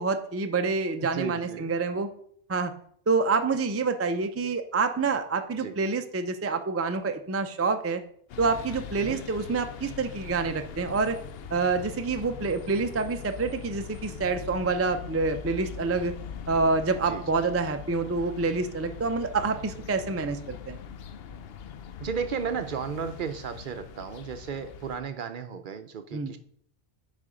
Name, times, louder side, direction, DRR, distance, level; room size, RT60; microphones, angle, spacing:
voice 1, 0.0-2.1 2.5-2.7 3.1-8.0 8.4-11.2 11.5-16.2 16.5-20.8 26.1-26.3, right 4 dB, 20° right, 7 dB, 0.4 m, -27 dB
voice 2, 1.0-1.8 5.6-5.8 9.0-9.2 17.1-17.2 22.0-26.4, right 6 dB, 60° right, 9 dB, 0.7 m, -34 dB
sound 1, 8.3-25.0, left 7 dB, 70° left, 0.8 m, -42 dB
8.6 x 4.2 x 5.0 m, 0.64 s
omnidirectional pair, 1.1 m